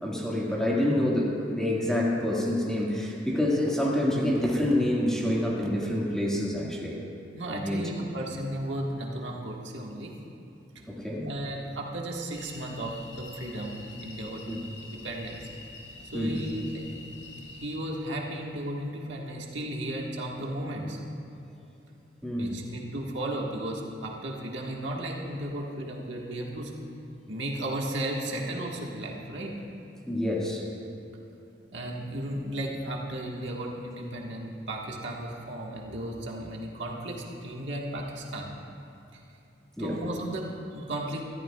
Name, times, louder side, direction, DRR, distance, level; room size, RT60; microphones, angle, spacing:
voice 1, 0.0-7.0 7.5-7.8 10.9-11.3 14.5-14.6 16.1-16.4 22.2-22.5 30.1-30.6 39.8-40.0, left 1 dB, 5° left, -5 dB, 1.8 m, -27 dB
voice 2, 7.3-10.1 10.7-10.8 11.2-15.5 16.1-16.9 17.3-21.0 22.4-26.7 27.3-29.5 31.7-38.5 39.1-39.2 39.8-41.2, right 1 dB, 70° right, -2 dB, 1.6 m, -35 dB
sound 1, 12.3-17.8, left 3 dB, 70° left, 2.0 m, -46 dB
22.0 x 14.0 x 2.4 m, 2.8 s
head